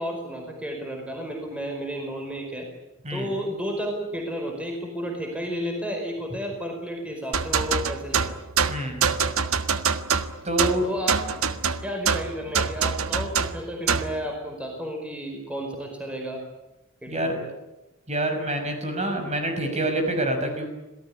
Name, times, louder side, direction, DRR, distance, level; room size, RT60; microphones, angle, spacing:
voice 1, 0.0-2.7 3.1-8.3 10.8-11.3 11.8-16.4 17.0-17.5, equal, 5° right, 2 dB, 4.9 m, -32 dB
sound 1, 7.3-14.2, right 6 dB, 80° right, 1.5 m, -25 dB
voice 2, 8.7-9.0 10.4-11.0 17.1-17.4 18.1-20.7, right 1 dB, 30° right, 5 dB, 5.8 m, -26 dB
27.0 x 18.0 x 9.9 m, 0.99 s
head